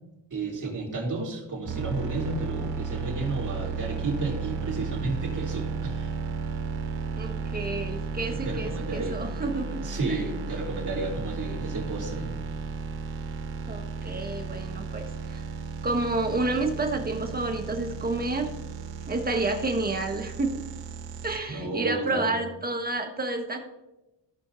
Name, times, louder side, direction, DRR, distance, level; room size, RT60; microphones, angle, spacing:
voice 1, 0.3-6.1 8.3-9.2 9.8-12.3 21.5-22.3, right 2 dB, 40° right, -4 dB, 3.3 m, -32 dB
sound 1, 1.7-21.4, right 5 dB, 70° right, 1.4 m, -34 dB
voice 2, 7.1-9.8 10.1-10.2 13.7-15.0 15.3-15.4 15.8-18.5 19.1-20.5 21.2-23.6, right 2 dB, 20° right, 3 dB, 1.6 m, -29 dB
16.5 x 5.7 x 2.8 m, 0.97 s
cardioid pair, 95°, 45 cm